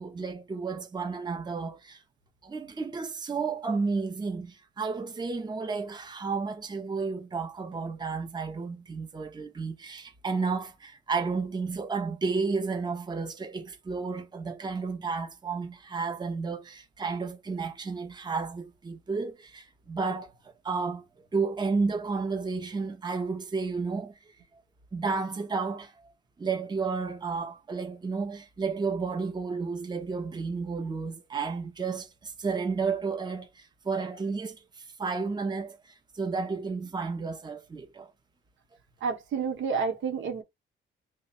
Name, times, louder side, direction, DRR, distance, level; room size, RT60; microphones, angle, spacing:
voice 1, 0.0-2.0 2.4-20.3 20.6-21.0 21.3-24.1 24.5-24.6 24.9-26.0 26.4-35.8 36.1-38.1, right 4 dB, 20° right, 0.8 m, -32 dB
voice 2, 39.0-40.4, right 5 dB, 75° right, 1.2 m, -29 dB
2.9 x 2.4 x 4.2 m
cardioid pair, 90°, 20 cm